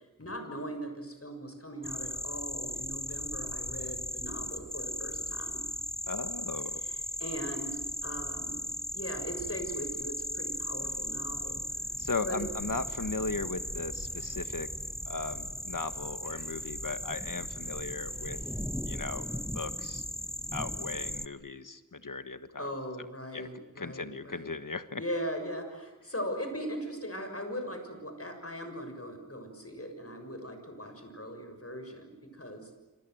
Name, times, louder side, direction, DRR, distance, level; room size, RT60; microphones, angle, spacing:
voice 1, 0.0-5.6 6.8-8.7 8.9-11.6 12.2-12.4 22.6-24.6 25.0-32.7, equal, 45° left, 6 dB, 6.6 m, -39 dB
sound 1, 1.8-21.3, equal, ahead, 0.9 m, -37 dB
voice 2, 6.1-6.8 12.0-14.7 15.1-18.4 18.8-20.0 20.5-22.7 23.3-23.5 23.8-25.0, left 3 dB, 75° left, 10 dB, 1.5 m, -37 dB
27.5 x 27.0 x 8.0 m, 1.1 s
wide cardioid pair, 45°, 32 cm